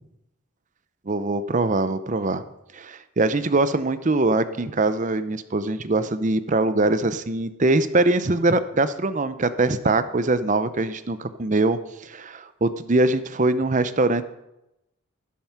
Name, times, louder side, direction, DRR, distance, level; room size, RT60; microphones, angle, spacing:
voice 1, 1.1-2.4 2.7-14.2, right 2 dB, 35° right, 13 dB, 0.6 m, -22 dB
12.0 x 11.0 x 5.8 m, 0.88 s
head